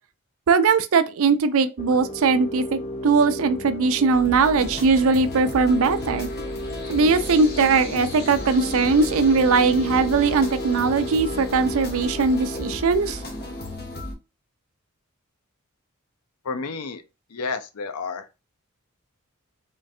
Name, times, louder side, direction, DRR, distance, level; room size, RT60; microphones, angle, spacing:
voice 1, 0.5-6.3 6.9-13.2, right 4 dB, 70° right, 0.4 m, -20 dB
sound 1, 1.8-13.8, left 1 dB, 30° left, 0.6 m, -34 dB
sound 2, 4.1-14.1, left 1 dB, 50° left, 1.1 m, -34 dB
voice 2, 16.4-17.0 17.3-18.4, left 4 dB, 85° left, 0.5 m, -31 dB
3.7 x 3.2 x 2.6 m
head